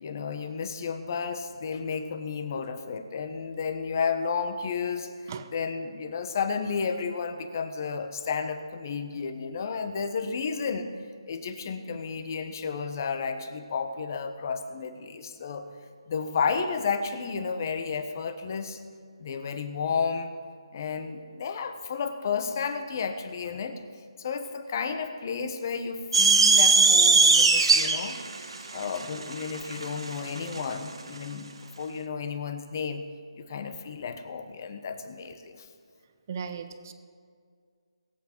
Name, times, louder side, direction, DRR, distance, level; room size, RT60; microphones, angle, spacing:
voice 1, 0.0-10.9 11.3-15.7 16.1-18.8 19.2-20.3 20.7-23.8 24.2-33.1 33.4-35.7, left 5 dB, 40° left, 9 dB, 1.1 m, -32 dB
sound 1, 26.1-30.6, right 4 dB, 75° right, 1.4 m, -20 dB
voice 2, 36.3-36.9, right 6 dB, 35° right, 9 dB, 0.9 m, -37 dB
22.5 x 8.3 x 4.5 m, 2.1 s
hypercardioid pair, 160°, 3 cm